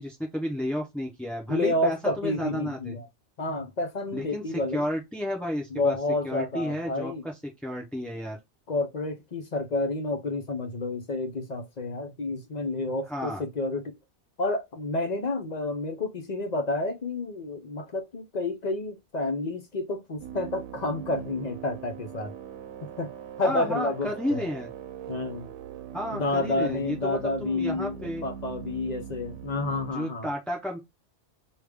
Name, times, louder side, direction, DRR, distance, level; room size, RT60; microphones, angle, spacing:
voice 1, 0.0-3.0 4.1-6.0 6.2-7.3 7.6-8.4 13.1-13.4 23.4-24.7 25.9-28.3 29.9-30.8, equal, ahead, 0.4 m, -32 dB
voice 2, 1.5-3.1 3.4-4.9 5.7-7.2 8.7-14.0 14.4-22.3 22.8-23.1 23.4-24.4 25.1-25.5 26.2-30.3, left 2 dB, 45° left, 0.6 m, -30 dB
sound 1, 20.2-29.9, right 10 dB, 75° right, 0.9 m, -41 dB
5.0 x 2.3 x 3.4 m
omnidirectional pair, 1.2 m